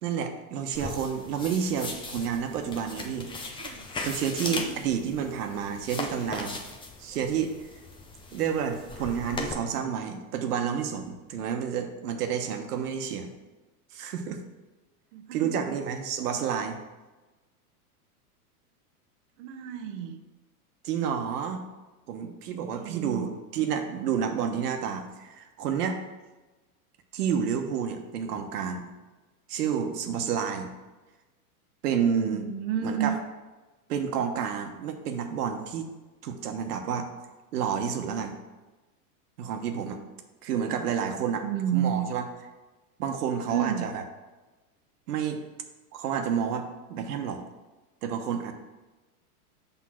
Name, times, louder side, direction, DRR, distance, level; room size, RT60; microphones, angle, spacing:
voice 1, 0.0-3.3 4.0-6.6 7.0-7.5 8.3-13.3 13.9-14.4 15.3-16.8 20.8-21.6 22.1-26.0 27.1-28.8 29.5-30.7 31.8-32.5 32.8-33.1 33.9-35.9 36.2-37.1 37.5-38.3 39.4-40.0 40.4-41.5 41.7-42.2 43.0-44.0 45.1-45.4 45.9-47.4 48.0-48.5, right 7 dB, 75° right, 5 dB, 1.1 m, -30 dB
sound 1, 0.7-9.5, left 3 dB, 10° left, 0.6 m, -38 dB
voice 2, 4.4-4.8 15.1-15.8 19.4-20.2 22.8-23.3 32.2-33.1 41.4-42.1 43.5-43.9, right 10 dB, 50° right, 6 dB, 0.7 m, -31 dB
6.2 x 3.7 x 5.9 m, 1.2 s
hypercardioid pair, 120°, 47 cm